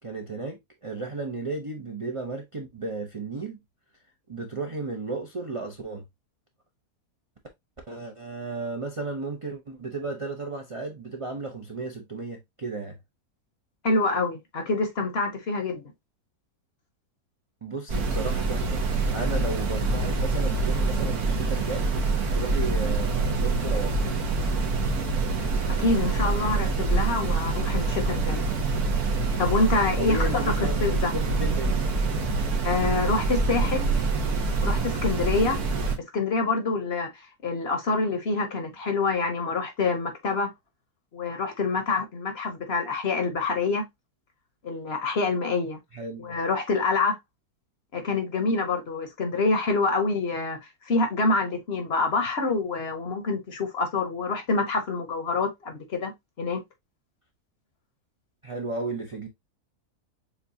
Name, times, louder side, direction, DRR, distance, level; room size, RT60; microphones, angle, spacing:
voice 1, 0.0-3.6 4.3-6.0 7.9-13.0 17.6-18.8 19.1-21.9 22.3-24.1 30.0-31.8 45.9-46.3 58.4-59.3, right 3 dB, 40° right, 0.4 m, -34 dB
voice 2, 13.8-15.9 25.7-28.4 29.4-31.1 32.6-33.9 34.6-35.6 36.0-40.5 41.1-43.8 44.6-45.8 46.2-47.1 47.9-50.6 50.9-56.1 56.4-56.6, left 3 dB, 50° left, 0.9 m, -26 dB
sound 1, 17.9-36.0, right 3 dB, 75° right, 1.5 m, -26 dB
7.0 x 2.4 x 2.6 m
omnidirectional pair, 1.6 m